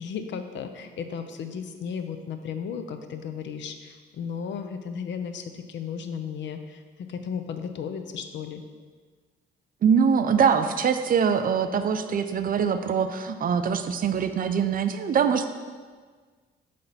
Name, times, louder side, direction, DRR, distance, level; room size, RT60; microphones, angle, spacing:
voice 1, 0.0-8.6, left 6 dB, 65° left, 7 dB, 0.6 m, -35 dB
voice 2, 9.8-15.5, right 7 dB, 45° right, 9 dB, 0.5 m, -23 dB
7.8 x 3.3 x 4.2 m, 1.5 s
cardioid pair, 90°, 20 cm